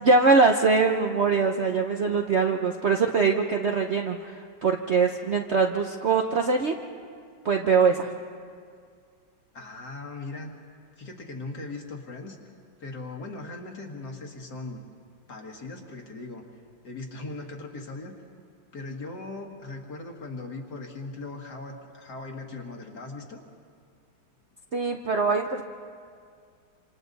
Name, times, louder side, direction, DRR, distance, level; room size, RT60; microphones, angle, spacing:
voice 1, 0.0-6.7 7.4-8.1 24.7-25.6, right 4 dB, 55° right, 3 dB, 0.8 m, -22 dB
voice 2, 9.5-10.5 11.0-12.4 12.8-14.8 15.3-16.4 16.8-18.1 18.7-23.4, left 3 dB, 60° left, 1 dB, 2.3 m, -39 dB
27.0 x 26.5 x 4.0 m, 2.2 s
omnidirectional pair, 2.1 m